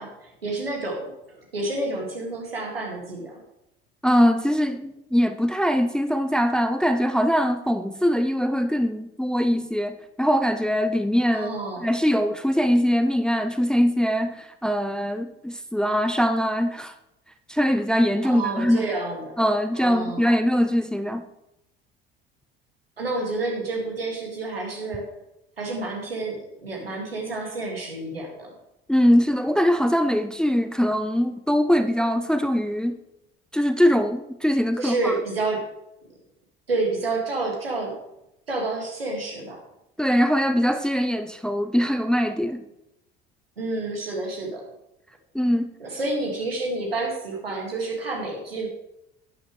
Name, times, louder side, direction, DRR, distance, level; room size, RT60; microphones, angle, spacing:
voice 1, 0.0-3.4 11.3-11.9 18.2-19.4 19.7-20.2 23.0-25.0 25.6-28.5 34.8-35.6 36.7-37.9 38.5-39.6 43.6-44.6 45.8-48.7, right 2 dB, 85° right, -1 dB, 2.2 m, -29 dB
voice 2, 4.0-11.5 11.8-16.9 17.5-18.9 19.4-21.3 28.9-33.0 33.5-35.1 40.0-42.6 45.3-45.7, equal, 5° left, 9 dB, 0.6 m, -22 dB
11.5 x 9.7 x 3.2 m, 0.85 s
figure-of-eight pair, 60°, 29 cm